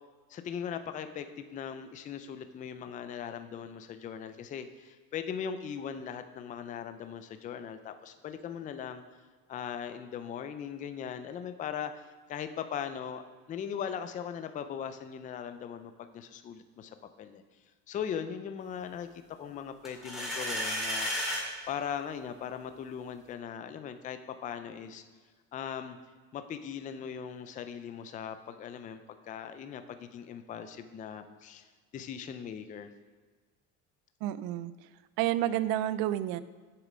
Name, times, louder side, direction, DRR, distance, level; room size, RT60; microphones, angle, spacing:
voice 1, 0.3-9.0 9.5-13.2 13.5-17.4 17.9-21.1 21.7-25.0 25.5-26.0 26.3-31.7 31.9-32.9, left 8 dB, 25° left, 9 dB, 0.3 m, -39 dB
sound 1, 19.8-21.4, equal, ahead, 2.0 m, -32 dB
voice 2, 34.2-34.7 35.2-36.4, right 13 dB, 75° right, 16 dB, 0.5 m, -29 dB
7.3 x 6.8 x 5.0 m, 1.5 s
cardioid pair, 155°, 36 cm